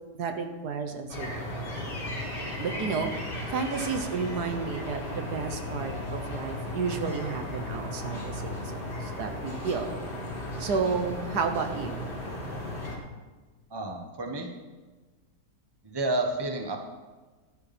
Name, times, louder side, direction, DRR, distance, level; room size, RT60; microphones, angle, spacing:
voice 1, 0.1-1.3 2.6-3.1 3.5-8.6 9.0-9.9 10.6-12.0, right 5 dB, 70° right, 6 dB, 1.6 m, -31 dB
sound 1, 1.1-13.0, left 1 dB, 85° left, 3.6 m, -35 dB
voice 2, 13.7-14.5 15.8-16.8, right 2 dB, 15° right, 3 dB, 1.3 m, -30 dB
13.5 x 11.5 x 4.4 m, 1.3 s
omnidirectional pair, 1.8 m